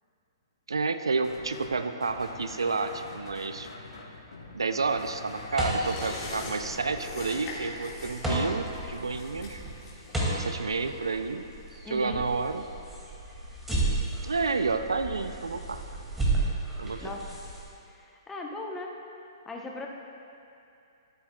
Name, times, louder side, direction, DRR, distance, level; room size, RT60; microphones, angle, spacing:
voice 1, 0.7-3.7 4.5-9.6 10.3-11.4 11.9-12.6 14.2-15.8 16.8-17.1, right 4 dB, 85° right, 9 dB, 0.4 m, -30 dB
sound 1, 1.2-1.7 2.0-7.4, left 3 dB, 75° left, 1.3 m, -45 dB
sound 2, 5.0-12.0 12.4-12.5, left 2 dB, 40° left, 1.9 m, -43 dB
sound 3, 5.5-17.6, right 2 dB, 10° right, 2.3 m, -33 dB
voice 2, 11.8-12.2 17.0-17.3 17.9-18.9 19.4-19.9, left 2 dB, 10° left, 0 dB, 1.0 m, -38 dB
13.0 x 9.8 x 2.3 m, 2.7 s
hypercardioid pair, 125°, 2 cm